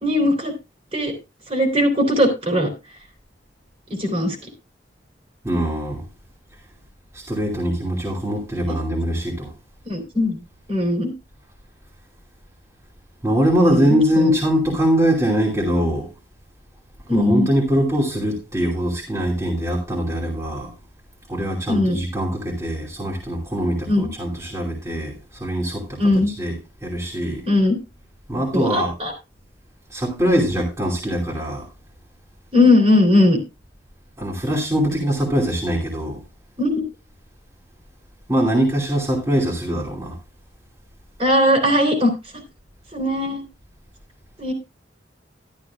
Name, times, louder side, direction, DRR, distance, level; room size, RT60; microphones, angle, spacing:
voice 1, 0.0-0.5 0.9-1.1 1.5-2.7 4.0-4.3 9.8-10.4 10.7-11.1 13.6-14.3 17.1-17.5 21.7-22.0 23.9-24.1 26.0-26.3 27.4-27.8 28.5-29.1 32.5-33.4 36.6-36.8 41.2-42.1 42.9-43.4 44.4-44.5, left 1 dB, 35° right, 3.3 m, -19 dB
voice 2, 5.4-6.0 7.1-9.5 13.2-16.1 17.1-20.7 21.3-27.4 28.3-28.9 29.9-31.6 34.2-36.2 38.3-40.1, equal, 15° right, 2.7 m, -22 dB
13.0 x 12.0 x 2.4 m
head